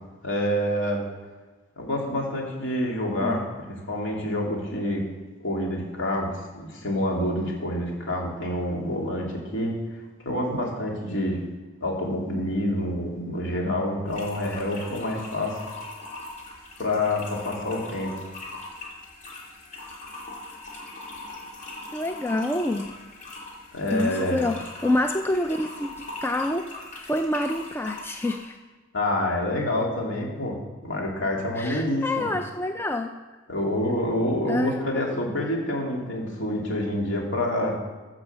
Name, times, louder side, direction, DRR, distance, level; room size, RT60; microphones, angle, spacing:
voice 1, 0.2-1.0 1.8-5.0 5.4-6.3 6.5-9.8 10.2-11.4 11.8-15.6 16.8-18.1 23.7-24.4 28.9-30.6 30.8-32.3 33.5-37.8, left 1 dB, 60° left, -1 dB, 3.0 m, -27 dB
sound 1, 14.1-28.5, left 2 dB, 40° left, 2.7 m, -41 dB
voice 2, 21.9-22.9 23.9-28.6 31.6-33.1 34.5-34.8, left 1 dB, 10° left, 5 dB, 0.4 m, -27 dB
15.0 x 6.1 x 6.9 m, 1.3 s
head